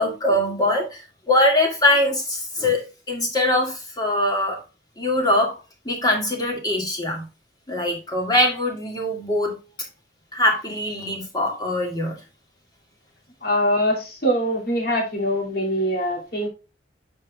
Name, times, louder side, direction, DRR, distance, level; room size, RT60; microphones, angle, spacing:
voice 1, 0.0-4.6 5.0-5.6 5.9-7.3 7.7-9.6 10.3-12.2, left 1 dB, 20° left, 1 dB, 2.0 m, -22 dB
voice 2, 13.4-16.5, equal, 55° left, 0 dB, 2.5 m, -23 dB
8.5 x 5.4 x 2.3 m, 0.30 s
head